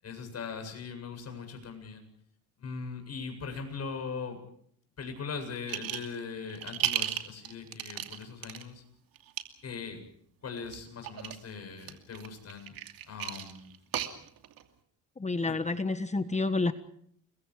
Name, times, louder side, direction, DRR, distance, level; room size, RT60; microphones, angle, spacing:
voice 1, 0.0-2.1 2.6-4.4 5.0-8.8 9.6-10.0 10.4-12.8 13.1-13.7 15.4-15.6, left 5 dB, 40° left, 6 dB, 7.8 m, -40 dB
sound 1, 5.7-6.2 6.5-8.6 9.2-9.4 10.6-11.4 11.8-14.6, right 11 dB, 65° right, 2.7 m, -34 dB
voice 2, 15.2-16.7, left 3 dB, 20° left, 11 dB, 1.5 m, -29 dB
30.0 x 22.5 x 4.9 m, 0.66 s
cardioid pair, 110°, 38 cm